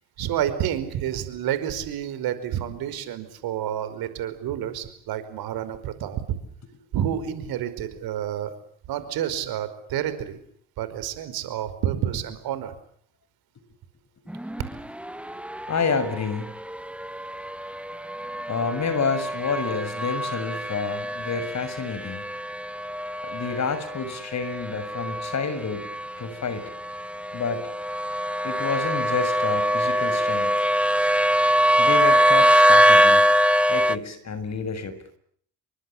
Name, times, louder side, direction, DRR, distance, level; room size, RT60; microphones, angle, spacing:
voice 1, 0.2-6.4 6.9-8.5 8.9-10.4 10.8-12.7, right 10 dB, 65° right, 12 dB, 5.2 m, -29 dB
sound 1, 14.3-34.0, equal, 5° right, 1.3 m, -23 dB
voice 2, 15.7-16.6 18.5-22.2 23.2-25.9 26.2-26.7 27.3-27.7 28.4-30.7 31.8-33.2 33.7-34.9, left 5 dB, 45° left, 12 dB, 7.1 m, -29 dB
29.0 x 24.0 x 7.4 m, 0.63 s
hypercardioid pair, 60°, 39 cm